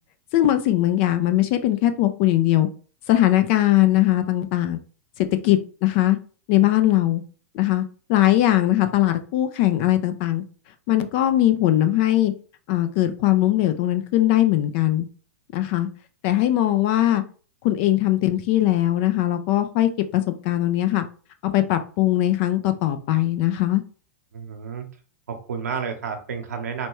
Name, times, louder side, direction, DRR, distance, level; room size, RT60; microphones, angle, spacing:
voice 1, 0.3-2.7 3.1-4.8 5.2-6.2 6.5-7.2 7.5-7.8 8.1-10.4 10.9-12.3 12.7-15.1 15.5-15.9 16.2-17.2 17.6-21.0 21.4-23.8, left 14 dB, 50° left, 9 dB, 0.4 m, -20 dB
voice 2, 24.3-24.9 25.3-26.9, right 6 dB, 85° right, 5 dB, 0.8 m, -31 dB
4.2 x 2.2 x 3.0 m, 0.39 s
hypercardioid pair, 115°, 8 cm